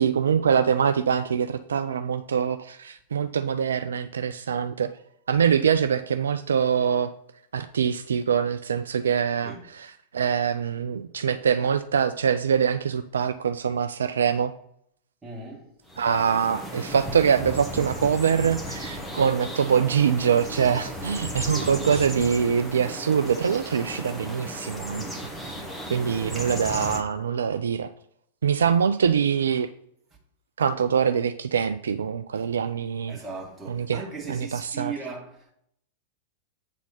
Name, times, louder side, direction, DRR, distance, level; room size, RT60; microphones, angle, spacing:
voice 1, 0.0-4.9 5.3-7.1 7.5-14.5 16.0-25.1 25.9-27.9 28.4-29.7 30.6-33.2 33.7-34.0 34.3-34.9, right 7 dB, 65° right, 0.3 m, -24 dB
voice 2, 15.2-15.7 21.5-22.2 25.0-25.3 26.3-26.5 28.6-28.8 32.4-32.5 33.1-35.5, right 4 dB, 15° right, 1.9 m, -38 dB
sound 1, 15.9-27.0, equal, 5° left, 1.4 m, -35 dB
8.1 x 4.0 x 5.7 m
figure-of-eight pair, 90°, 0 cm